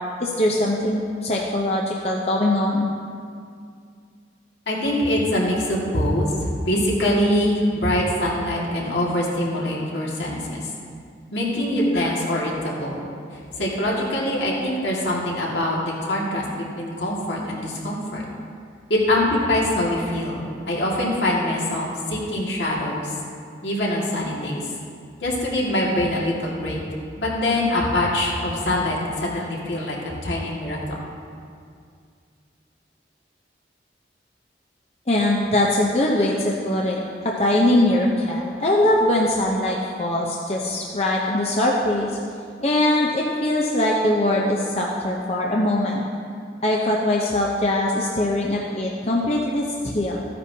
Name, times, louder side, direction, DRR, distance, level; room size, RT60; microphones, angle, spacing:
voice 1, 0.0-2.9 35.1-42.1 42.6-46.0 46.6-50.2, left 1 dB, 35° left, -2 dB, 0.7 m, -22 dB
voice 2, 4.7-10.6 11.3-13.1 13.6-18.2 18.9-23.1 23.6-24.6 25.2-26.8 27.2-31.0, left 1 dB, 75° left, -4 dB, 2.0 m, -24 dB
14.5 x 9.6 x 2.8 m, 2.3 s
head